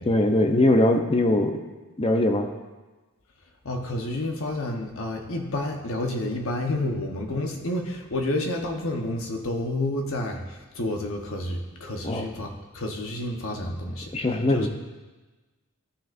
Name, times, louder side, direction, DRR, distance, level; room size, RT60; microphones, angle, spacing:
voice 1, 0.0-1.5 2.0-2.5 12.0-12.2 14.1-14.7, left 1 dB, 25° left, 5 dB, 0.7 m, -21 dB
voice 2, 3.6-14.1 14.5-14.7, left 1 dB, 65° left, 2 dB, 1.1 m, -30 dB
13.0 x 6.3 x 2.6 m, 1.2 s
head